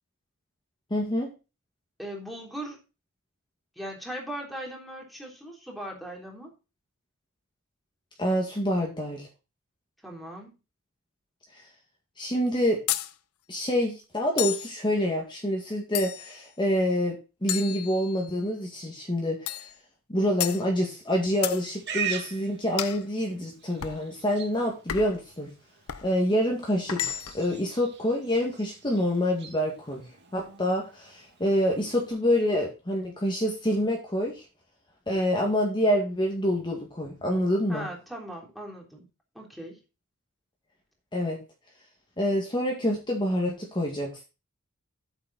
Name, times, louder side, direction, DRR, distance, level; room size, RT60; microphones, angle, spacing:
voice 1, 0.9-1.3 8.2-9.3 12.2-12.8 13.5-17.2 17.4-19.7 20.1-25.5 26.0-30.0 30.3-34.4 35.1-37.9 41.1-41.4 42.2-44.2, equal, 20° left, 0 dB, 2.0 m, -27 dB
voice 2, 2.0-2.8 3.7-6.5 10.0-10.5 37.7-39.0 39.3-39.8, equal, ahead, 0 dB, 3.4 m, -39 dB
sound 1, 12.9-13.1 14.4-14.7 15.9-16.4 17.5-18.4 19.5-19.7 20.4-20.6 21.4-21.6 22.8-23.0 23.8-24.0 24.9-25.2 25.9-26.1 26.9-27.5, left 12 dB, 75° left, 0.7 m, -32 dB
Livestock farm animals working animals, 21.3-32.1, right 8 dB, 55° right, 2.4 m, -42 dB
8.9 x 7.5 x 4.1 m, 0.30 s
head